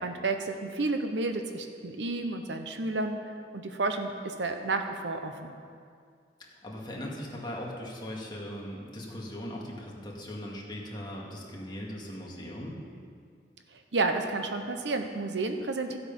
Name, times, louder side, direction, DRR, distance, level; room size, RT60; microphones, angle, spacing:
voice 1, 0.0-5.5 13.9-16.0, right 3 dB, 75° right, 6 dB, 0.9 m, -31 dB
voice 2, 6.4-12.8, left 1 dB, 25° left, -3 dB, 2.1 m, -39 dB
14.5 x 8.0 x 5.5 m, 2.2 s
head